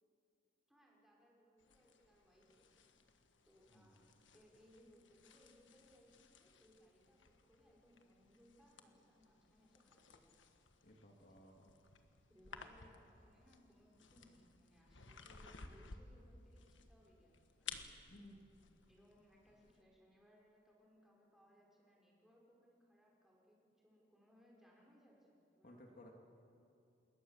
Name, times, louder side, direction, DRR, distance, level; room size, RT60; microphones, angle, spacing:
voice 1, 0.7-3.0 3.4-10.3 12.3-17.8 18.9-26.1, equal, ahead, -3 dB, 5.3 m, -68 dB
sound 1, 1.6-19.8, left 5 dB, 80° left, 1.5 m, -58 dB
voice 2, 10.8-11.7 18.1-18.4 25.6-26.1, left 1 dB, 50° left, 1 dB, 2.4 m, -59 dB
28.0 x 21.0 x 7.3 m, 2.6 s
head